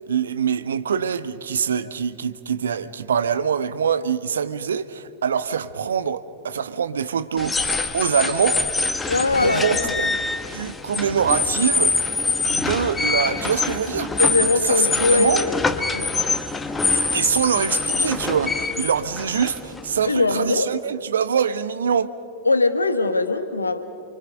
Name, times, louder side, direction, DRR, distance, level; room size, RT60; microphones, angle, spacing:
voice 1, 0.1-8.6 9.0-9.1 9.4-10.1 10.5-12.1 12.5-14.1 14.4-14.8 15.1-15.4 16.9-22.1, right 7 dB, 65° right, 13 dB, 0.9 m, -24 dB
sound 1, 7.4-20.1, left 3 dB, 15° left, 1.2 m, -24 dB
voice 2, 9.1-10.0 14.2-16.1 20.0-20.7 22.4-23.8, left 3 dB, 80° left, 10 dB, 1.4 m, -21 dB
29.0 x 24.0 x 5.3 m, 2.5 s
figure-of-eight pair, 90°, 0 cm